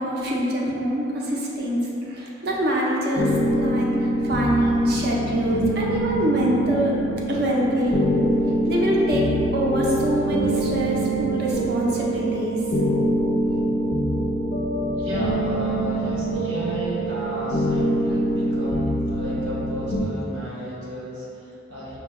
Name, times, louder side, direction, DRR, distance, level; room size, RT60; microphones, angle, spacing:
voice 1, 0.0-1.8 2.1-7.0 7.3-8.1 8.7-9.3 9.5-12.6, equal, 55° right, -3 dB, 0.6 m, -24 dB
sound 1, 3.2-20.0, right 1 dB, 50° left, 0.4 m, -24 dB
voice 2, 14.9-22.0, equal, 80° right, -7 dB, 1.0 m, -33 dB
5.6 x 2.3 x 2.9 m, 2.9 s
head